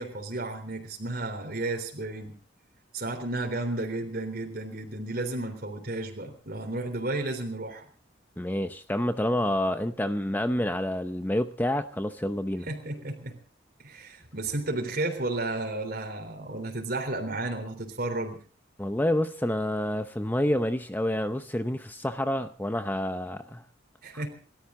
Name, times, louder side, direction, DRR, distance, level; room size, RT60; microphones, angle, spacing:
voice 1, 0.0-2.3 2.9-7.9 12.7-13.4 13.8-18.4 24.0-24.3, right 2 dB, 55° right, 4 dB, 3.6 m, -32 dB
voice 2, 8.4-12.7 18.8-23.6 24.1-24.2, left 1 dB, 10° left, 9 dB, 0.7 m, -28 dB
29.5 x 13.0 x 3.8 m, 0.38 s
head